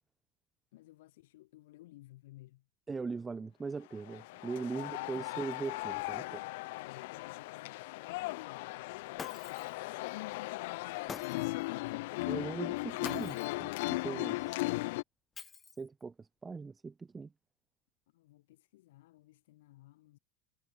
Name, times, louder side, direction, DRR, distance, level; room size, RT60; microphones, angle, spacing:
voice 1, 0.7-2.6 4.7-5.5 6.7-12.2 18.1-20.2, left 17 dB, 90° left, 4.7 m, -55 dB
voice 2, 2.9-6.4 12.3-14.7 15.8-17.3, right 4 dB, 15° right, 1.2 m, -40 dB
sound 1, 3.9-15.0, left 22 dB, 75° left, 0.7 m, -37 dB
Shatter, 9.2-9.8 11.1-11.7 13.0-13.6 15.4-16.0, left 6 dB, 20° left, 0.9 m, -46 dB
supercardioid pair, 150°, 0 cm